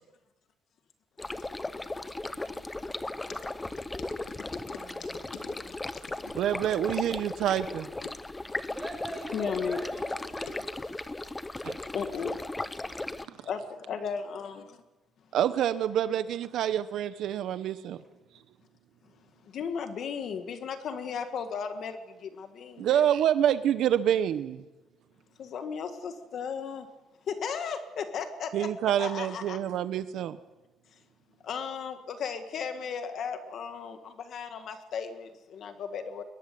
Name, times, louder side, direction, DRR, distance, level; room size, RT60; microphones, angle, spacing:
voice 1, 1.2-6.2 8.4-8.7 9.3-9.8 11.9-12.7 13.4-14.8 19.4-23.0 25.4-26.9 27.3-29.6 30.9-31.0 31.4-36.2, left 6 dB, 45° left, 8 dB, 1.6 m, -37 dB
sound 1, 1.2-13.3, left 2 dB, 10° left, 0.7 m, -36 dB
voice 2, 4.5-5.7 8.6-10.7 17.9-18.2, right 1 dB, 5° right, 2 dB, 6.0 m, -43 dB
voice 3, 6.4-7.9 11.6-11.8 15.3-18.0 22.8-24.6 28.5-30.4, right 10 dB, 60° right, 12 dB, 0.9 m, -27 dB
22.0 x 19.0 x 9.4 m, 1.1 s
cardioid pair, 175°, 0 cm